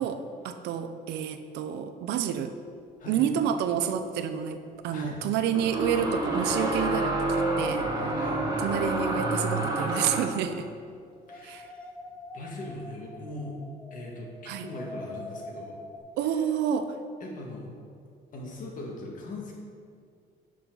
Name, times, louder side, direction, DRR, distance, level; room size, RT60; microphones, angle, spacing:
voice 1, 0.0-2.5 3.1-7.9 8.6-10.7 11.4-11.7 14.5-14.7 16.2-17.0, right 9 dB, 85° right, 9 dB, 0.6 m, -29 dB
sound 1, 3.6-3.7 5.6-10.4, right 2 dB, 25° right, 1.9 m, -28 dB
voice 2, 8.1-8.4 11.3-11.6 12.3-13.6 13.9-15.8 17.2-17.7 18.3-19.5, left 2 dB, 50° left, -1 dB, 2.0 m, -40 dB
sound 2, 9.7-10.8 11.1-16.0, left 1 dB, 5° left, 0.9 m, -45 dB
10.5 x 6.2 x 3.9 m, 2.2 s
cardioid pair, 110°, 17 cm